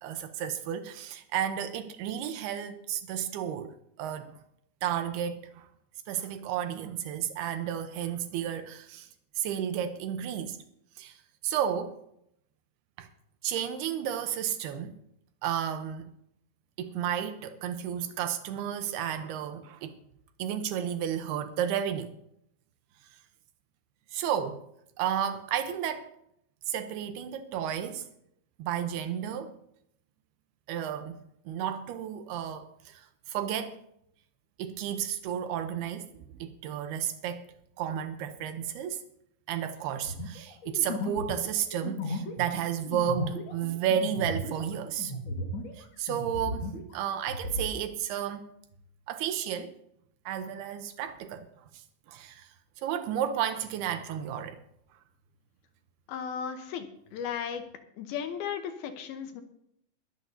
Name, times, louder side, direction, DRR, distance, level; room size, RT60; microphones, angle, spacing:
voice 1, 0.0-4.3 4.8-5.7 6.1-9.1 9.4-10.6 11.0-11.2 11.4-12.0 13.0-13.1 13.4-14.9 15.4-16.1 16.8-20.0 20.4-22.1 24.1-24.7 25.0-26.1 26.7-28.1 28.6-29.5 30.7-33.8 34.6-37.4 37.8-39.0 39.5-45.1 45.8-48.5 49.1-49.8 50.3-51.5 51.7-52.5 52.8-54.6, right 9 dB, 85° right, 2.8 m, -32 dB
sound 1, 40.1-45.8 46.1-47.7, left 1 dB, 55° left, 1.4 m, -36 dB
voice 2, 56.1-57.6 58.0-59.4, left 8 dB, 80° left, 2.7 m, -35 dB
22.0 x 11.5 x 2.7 m
omnidirectional pair, 4.6 m